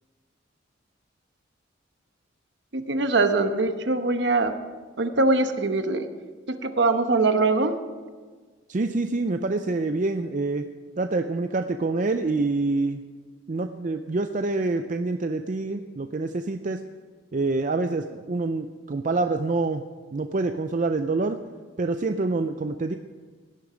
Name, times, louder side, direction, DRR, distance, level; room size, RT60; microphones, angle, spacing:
voice 1, 2.7-4.6 5.0-6.1 6.5-7.8, right 3 dB, 60° right, 8 dB, 1.0 m, -22 dB
voice 2, 8.7-10.6 11.0-13.0 13.5-16.8 17.3-19.8 20.1-21.4 21.8-23.0, right 3 dB, 40° right, 7 dB, 0.5 m, -26 dB
17.5 x 10.5 x 5.1 m, 1.5 s
head